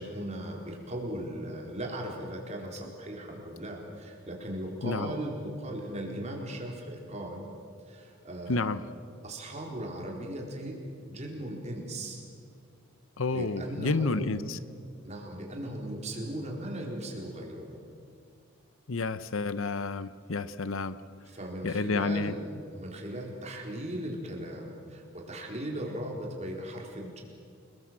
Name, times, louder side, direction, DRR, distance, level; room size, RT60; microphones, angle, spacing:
voice 1, 0.0-7.5 7.8-8.7 9.2-10.8 11.1-12.2 13.3-14.3 15.0-17.8 21.3-27.2, right 1 dB, 30° right, 0 dB, 4.3 m, -38 dB
voice 2, 8.5-8.8 13.2-14.6 18.9-21.0 21.6-22.3, left 3 dB, 70° left, 14 dB, 0.8 m, -30 dB
29.5 x 20.5 x 7.6 m, 2.2 s
head